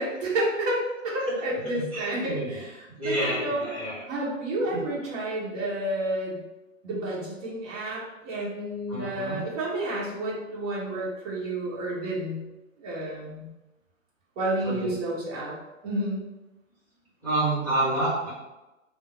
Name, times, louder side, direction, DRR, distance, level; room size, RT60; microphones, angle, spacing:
voice 1, 0.0-3.7 4.1-6.4 6.8-12.4 12.8-13.5 14.4-15.5 15.8-16.2, right 1 dB, 30° right, -6 dB, 1.2 m, -30 dB
voice 2, 1.8-2.5 3.0-4.0 8.9-9.4 14.6-14.9 17.2-18.3, right 2 dB, 5° left, -9 dB, 1.2 m, -28 dB
3.6 x 2.1 x 3.9 m, 1.0 s
figure-of-eight pair, 125°, 40 cm